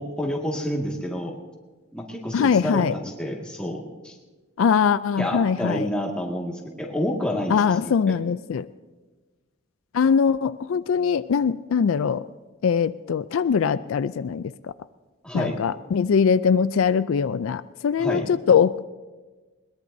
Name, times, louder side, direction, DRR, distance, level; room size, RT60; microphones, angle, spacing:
voice 1, 0.0-1.3 1.9-4.2 5.2-8.2 15.2-15.6 18.0-18.3, left 1 dB, 5° left, -1 dB, 1.9 m, -29 dB
voice 2, 2.3-2.9 4.6-5.9 7.5-8.7 9.9-12.2 12.6-14.4 15.3-18.8, left 6 dB, 75° left, 14 dB, 0.4 m, -22 dB
21.0 x 21.0 x 2.7 m, 1.3 s
head